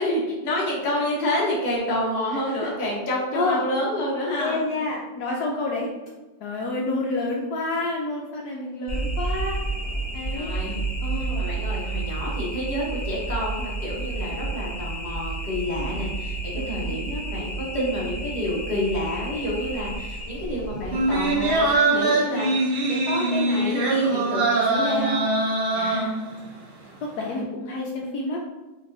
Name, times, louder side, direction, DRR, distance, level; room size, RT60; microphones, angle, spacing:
voice 1, 0.0-4.6 10.3-10.8 11.2-16.4 16.7-25.3, equal, 30° left, -5 dB, 0.9 m, -28 dB
voice 2, 2.3-2.7 3.3-3.7 4.4-5.9 6.4-9.6 10.1-10.5 11.0-11.5 15.8-16.0 16.5-17.0 25.7-26.1 27.0-28.4, left 2 dB, 70° left, -2 dB, 1.0 m, -29 dB
sound 1, 8.9-21.8, right 3 dB, 45° left, 1.9 m, -31 dB
sound 2, 20.9-26.6 26.9-27.0, right 2 dB, 55° right, 0.6 m, -23 dB
5.2 x 2.6 x 2.6 m, 1.1 s
omnidirectional pair, 1.9 m